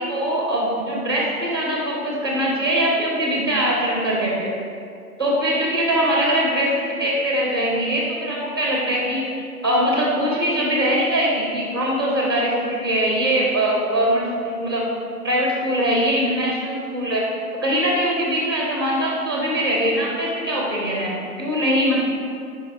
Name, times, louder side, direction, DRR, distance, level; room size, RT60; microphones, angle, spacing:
voice 1, 0.0-4.5 5.2-14.8 15.2-17.2 17.6-22.0, equal, 15° right, -3 dB, 0.5 m, -22 dB
5.1 x 4.1 x 4.7 m, 2.5 s
hypercardioid pair, 150°, 46 cm